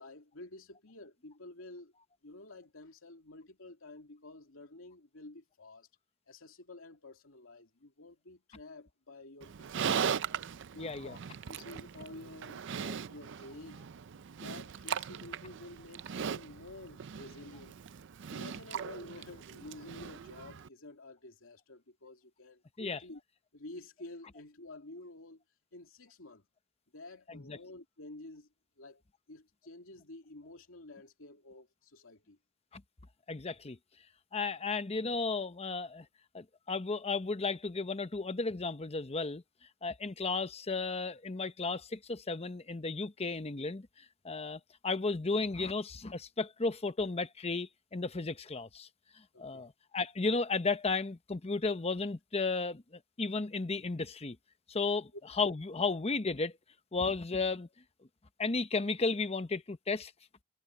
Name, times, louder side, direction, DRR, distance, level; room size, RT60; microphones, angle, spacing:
voice 1, 0.0-1.9 2.2-5.9 6.3-10.1 10.7-11.2 11.4-13.8 14.4-17.8 18.3-23.2 23.5-25.4 25.7-26.5 26.9-28.5 28.8-29.0 29.3-32.4 49.3-49.7 55.1-55.2, left 2 dB, 80° left, 2.5 m, -50 dB
Livestock farm animals working animals, 9.4-20.7, right 7 dB, 60° right, 0.5 m, -39 dB
voice 2, 10.8-11.1 22.8-23.0 27.3-27.6 32.7-32.8 33.3-33.8 34.3-36.1 36.3-39.4 39.8-48.9 49.4-54.4 54.7-55.1 55.4-56.5 56.9-57.7 58.4-60.1, left 3 dB, 30° left, 0.8 m, -34 dB
head